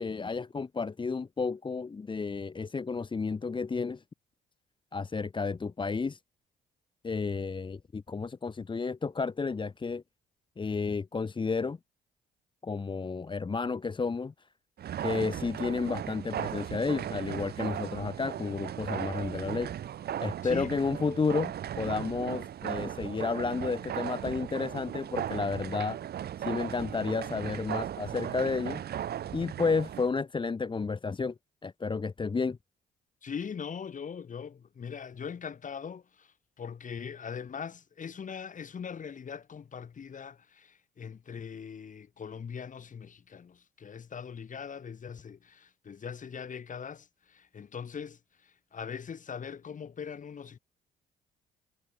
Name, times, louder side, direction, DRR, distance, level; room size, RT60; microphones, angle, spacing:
voice 1, 0.0-4.0 4.9-6.2 7.0-10.0 10.6-11.8 12.6-14.3 15.0-19.7 20.2-21.5 21.8-26.0 26.4-28.8 29.3-31.3 31.6-32.6, left 4 dB, 25° left, 0.9 m, -31 dB
sound 1, 14.8-30.1, right 10 dB, 60° right, 2.9 m, -37 dB
voice 2, 33.2-50.6, left 7 dB, 45° left, 2.5 m, -41 dB
hypercardioid pair, 50°, 19 cm